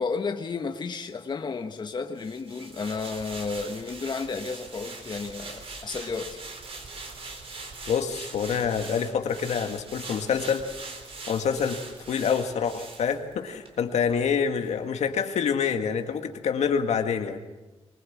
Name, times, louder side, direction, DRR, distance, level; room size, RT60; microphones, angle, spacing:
voice 1, 0.0-6.4, left 4 dB, 40° left, 6 dB, 1.2 m, -32 dB
sound 1, 2.2-13.7 14.1-14.2, right 3 dB, 60° right, 4.2 m, -42 dB
voice 2, 7.9-10.6 11.3-11.8 12.1-17.4, left 7 dB, 85° left, 6 dB, 1.7 m, -26 dB
23.5 x 20.5 x 7.3 m, 1.2 s
wide cardioid pair, 130°, 11 cm